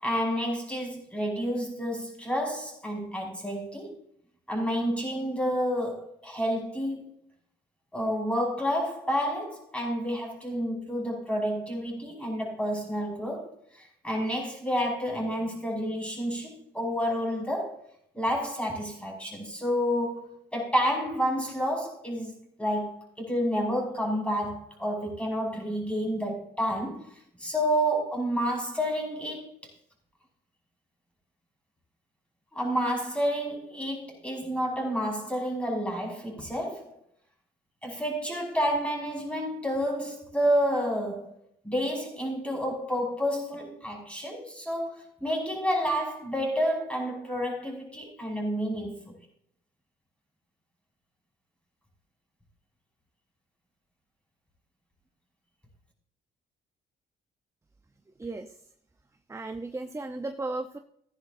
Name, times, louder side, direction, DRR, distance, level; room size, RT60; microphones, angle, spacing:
voice 1, 0.0-4.0 4.5-7.1 7.9-17.8 18.1-29.5 32.5-36.9 37.8-41.3 41.6-49.2, equal, 5° left, 5.6 m, -30 dB
voice 2, 58.2-58.5 59.3-60.8, right 2 dB, 15° right, 0.8 m, -35 dB
15.5 x 10.5 x 2.7 m
cardioid pair, 90°, 20 cm